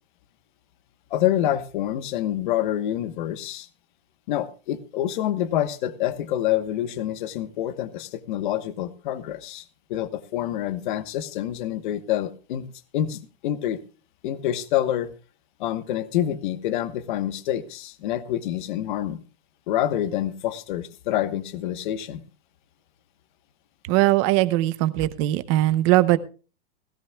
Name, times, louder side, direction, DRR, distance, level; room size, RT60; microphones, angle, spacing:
voice 1, 1.1-3.7 4.3-9.6 9.9-12.7 12.9-13.8 14.2-15.1 15.6-19.2 19.7-22.2, left 12 dB, 45° left, 13 dB, 1.2 m, -27 dB
voice 2, 23.8-26.2, right 16 dB, 25° right, 14 dB, 0.7 m, -20 dB
18.0 x 16.0 x 2.3 m, 0.35 s
supercardioid pair, 165°, 35 cm